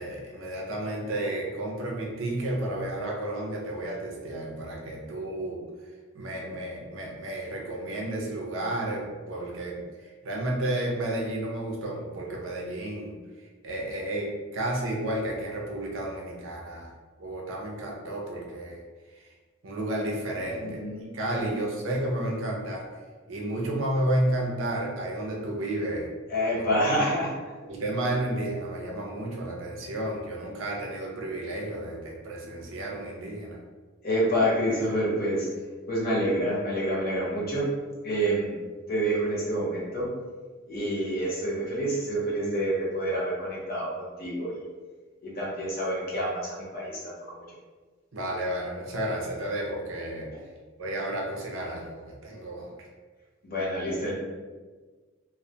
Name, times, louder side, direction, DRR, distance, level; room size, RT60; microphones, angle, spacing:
voice 1, 0.0-5.6 6.1-13.2 13.6-16.9 17.2-18.8 19.6-20.8 21.1-22.8 23.3-26.1 26.5-26.7 27.7-33.6 48.1-50.3 50.8-52.9, right 1 dB, 70° right, -1 dB, 0.5 m, -32 dB
voice 2, 20.4-21.6 26.3-27.3 34.0-35.5 35.9-37.7 38.0-38.6 38.9-40.1 40.7-44.6 45.2-47.4 50.3-50.4 53.4-54.1, equal, 45° left, -5 dB, 0.7 m, -28 dB
2.1 x 2.1 x 2.7 m, 1.4 s
head